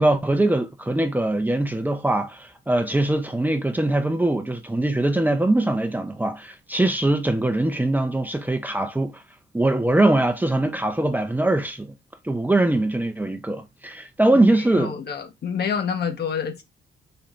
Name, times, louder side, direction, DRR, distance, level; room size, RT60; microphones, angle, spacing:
voice 1, 0.0-9.2 9.5-11.9 12.2-15.0, right 1 dB, 10° right, 0.7 m, -22 dB
voice 2, 14.8-16.6, left 7 dB, 55° left, 1.1 m, -27 dB
4.5 x 2.9 x 3.7 m
cardioid pair, 90°, 20 cm